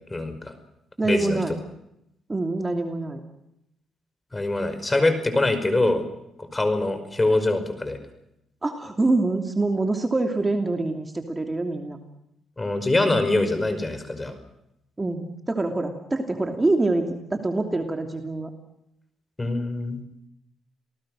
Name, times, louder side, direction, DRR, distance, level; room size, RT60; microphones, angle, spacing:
voice 1, 0.1-0.6 1.0-1.4 4.3-6.0 6.4-8.0 12.6-14.3 19.4-20.0, left 2 dB, 20° left, 10 dB, 5.2 m, -24 dB
voice 2, 1.0-1.5 2.3-3.2 8.6-12.0 15.0-18.5, right 2 dB, 20° right, 5 dB, 2.8 m, -25 dB
28.5 x 18.5 x 6.5 m, 0.81 s
cardioid pair, 90°, 0 cm